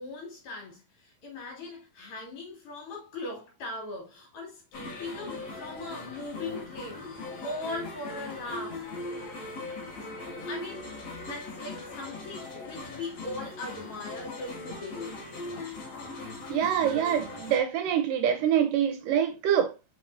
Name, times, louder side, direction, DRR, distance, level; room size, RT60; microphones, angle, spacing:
voice 1, 0.0-7.2 7.4-8.9 10.0-10.1 10.4-10.9 11.3-15.2, left 2 dB, 60° left, 4.5 m, -39 dB
sound 1, 4.7-17.6, left 2 dB, 45° left, 3.5 m, -40 dB
voice 2, 16.5-19.7, right 9 dB, 75° right, 2.2 m, -25 dB
6.3 x 5.4 x 2.8 m
omnidirectional pair, 4.2 m